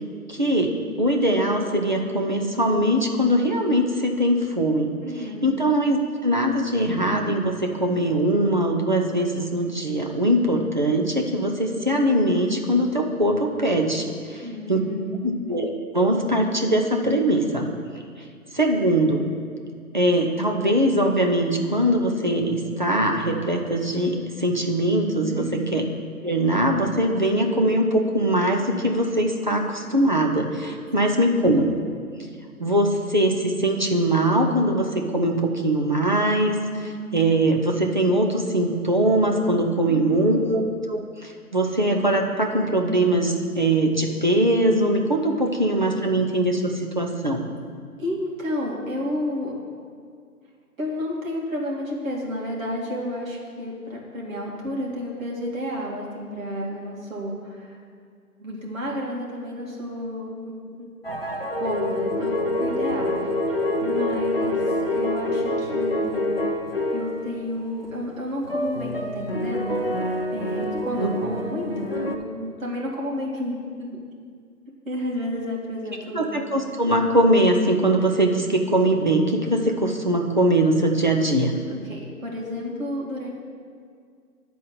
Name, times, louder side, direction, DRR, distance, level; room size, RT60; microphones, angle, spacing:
voice 1, 0.3-14.4 14.7-14.8 15.2-17.7 18.5-19.3 19.9-25.8 26.2-31.6 32.6-47.4 71.0-71.2 76.1-81.5, right 1 dB, 30° right, 1 dB, 0.6 m, -22 dB
voice 2, 5.0-5.5 14.4-15.3 25.3-25.7 30.9-31.4 39.9-40.5 48.0-49.5 50.8-57.8 58.4-60.9 61.6-63.1 63.6-66.3 66.9-74.0 74.9-76.3 81.7-83.3, left 1 dB, 60° right, -3 dB, 2.4 m, -31 dB
sound 1, 61.0-67.4 67.7-68.0 68.5-72.2, left 1 dB, 40° left, 0.4 m, -26 dB
10.5 x 4.2 x 6.7 m, 2.1 s
figure-of-eight pair, 160°, 46 cm